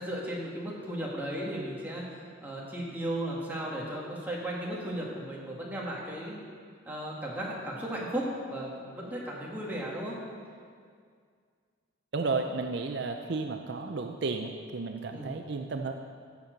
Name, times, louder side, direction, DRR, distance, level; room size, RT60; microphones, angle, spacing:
voice 1, 0.0-6.4 6.9-10.2 15.1-15.3, right 1 dB, 10° right, -4 dB, 1.9 m, -35 dB
voice 2, 12.1-15.9, right 3 dB, 60° right, 5 dB, 0.5 m, -33 dB
14.5 x 7.3 x 5.2 m, 2.1 s
head